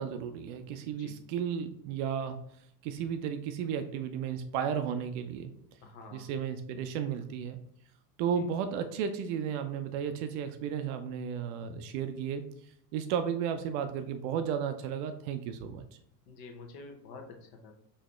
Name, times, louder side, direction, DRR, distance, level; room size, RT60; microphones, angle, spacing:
voice 1, 0.0-2.4 2.8-5.5 6.1-7.6 8.2-12.4 12.9-15.9, right 8 dB, 50° right, 8 dB, 0.6 m, -33 dB
voice 2, 5.8-6.3 8.3-8.4 16.3-17.7, left 4 dB, 50° left, 3 dB, 1.0 m, -48 dB
5.3 x 2.7 x 3.2 m, 0.68 s
figure-of-eight pair, 60°, 50 cm